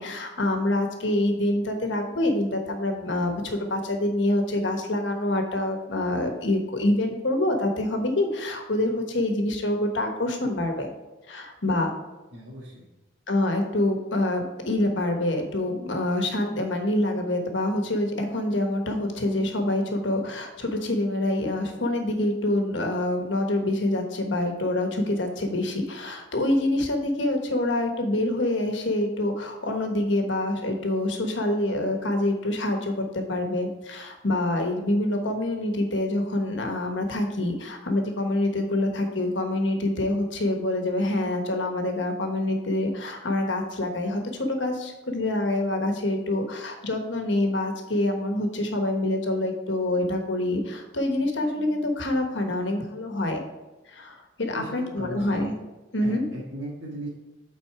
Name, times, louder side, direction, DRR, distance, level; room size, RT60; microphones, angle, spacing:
voice 1, 0.0-10.9 11.3-11.9 13.3-53.4 53.9-55.5 55.9-56.2, left 1 dB, 75° left, 4 dB, 1.3 m, -26 dB
voice 2, 12.3-12.9 54.5-55.5 56.0-57.1, right 1 dB, 75° right, -6 dB, 1.7 m, -37 dB
8.7 x 4.2 x 4.7 m, 1.1 s
head